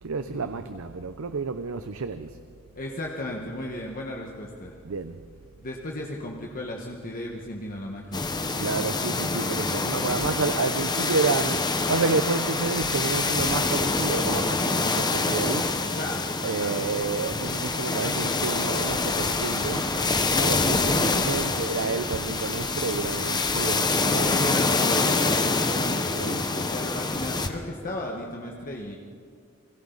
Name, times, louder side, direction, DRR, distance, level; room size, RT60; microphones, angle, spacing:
voice 1, 0.0-2.4 4.8-5.2 8.6-16.0 16.4-19.9 20.4-24.5 26.1-26.7, right 4 dB, 65° right, 10 dB, 0.7 m, -30 dB
voice 2, 2.7-4.7 5.6-8.6 15.9-16.2 16.6-16.7 24.3-29.0, left 1 dB, 40° left, -1 dB, 1.5 m, -35 dB
sound 1, 8.1-27.5, left 3 dB, 20° left, 1.0 m, -26 dB
29.5 x 21.5 x 4.0 m, 2.2 s
head